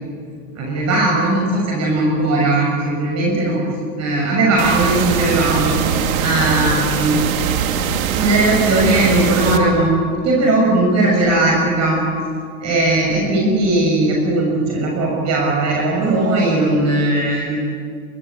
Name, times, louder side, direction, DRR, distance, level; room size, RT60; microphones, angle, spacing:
voice 1, 0.5-3.6 4.0-5.8 6.2-7.2 8.2-9.9 10.2-12.0 12.6-17.6, right 2 dB, 40° right, -1 dB, 6.8 m, -18 dB
independent pink noise verb, 4.6-9.6, right 7 dB, 70° right, 2.7 m, -21 dB
23.5 x 22.5 x 8.7 m, 2.3 s
hypercardioid pair, 110°, 43 cm